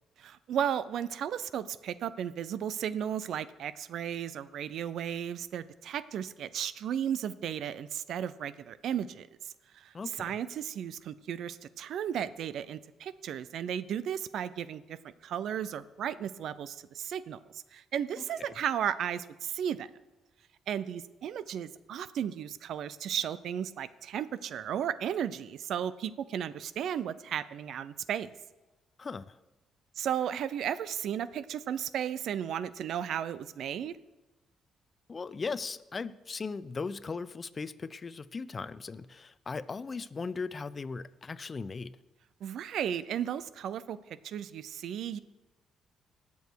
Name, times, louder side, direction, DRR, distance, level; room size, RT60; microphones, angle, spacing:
voice 1, 0.2-9.3 9.7-15.0 15.2-17.4 17.7-19.9 20.7-28.3 30.0-33.9 42.4-45.2, right 9 dB, 70° right, 16 dB, 0.5 m, -34 dB
voice 2, 9.9-10.3 18.4-18.5 29.0-29.4 35.1-42.0, left 4 dB, 35° left, 17 dB, 0.5 m, -38 dB
18.5 x 7.1 x 4.6 m, 1.1 s
cardioid pair, 90°, 0 cm